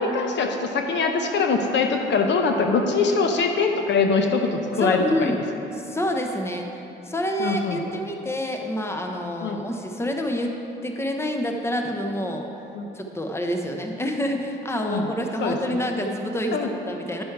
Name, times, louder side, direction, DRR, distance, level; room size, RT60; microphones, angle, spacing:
voice 1, 0.0-5.3 7.4-7.8 9.4-9.6 12.7-12.9 14.9-15.1 15.4-15.8 16.5-16.7, left 4 dB, 65° left, 4 dB, 0.8 m, -23 dB
voice 2, 4.8-5.4 5.7-6.7 7.0-12.5 12.9-17.2, equal, 15° left, 3 dB, 0.9 m, -27 dB
10.5 x 6.2 x 4.6 m, 2.9 s
cardioid pair, 90°, 20 cm